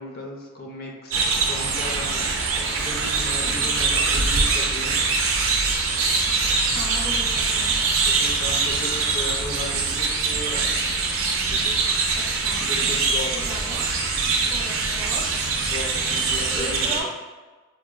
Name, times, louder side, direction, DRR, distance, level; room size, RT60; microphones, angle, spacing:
voice 1, 0.0-2.3 2.8-5.0 8.0-10.8 11.5-11.8 12.6-13.3 15.7-17.0, left 1 dB, 50° left, 0 dB, 0.4 m, -35 dB
sound 1, 1.1-17.0, right 4 dB, 80° right, 0.5 m, -23 dB
voice 2, 3.4-3.8 6.7-7.7 12.2-15.5 16.5-17.1, right 2 dB, 25° right, -2 dB, 0.4 m, -37 dB
3.8 x 2.1 x 2.3 m, 1.3 s
head